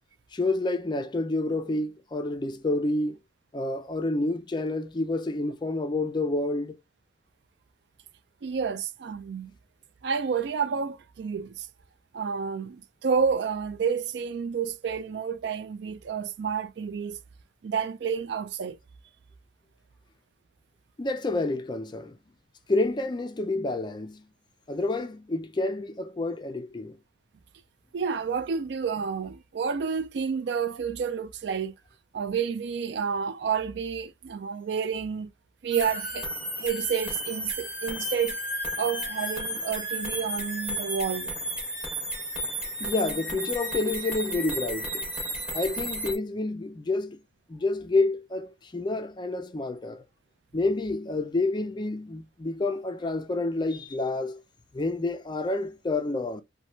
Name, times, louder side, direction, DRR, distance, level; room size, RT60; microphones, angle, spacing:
voice 1, 0.3-3.2 3.5-6.8 21.0-22.2 22.7-24.2 24.7-27.0 42.8-45.1 45.5-47.2 47.5-50.0 50.5-54.4 54.7-56.4, left 2 dB, 25° left, 0.4 m, -29 dB
voice 2, 8.4-9.5 10.0-11.7 12.1-17.2 17.6-18.8 27.9-31.7 32.1-35.3 35.6-36.3 36.6-38.4 38.8-41.3, right 6 dB, 65° right, 0.4 m, -30 dB
sound 1, 35.7-46.2, equal, 5° right, 1.0 m, -33 dB
3.0 x 2.2 x 2.6 m
head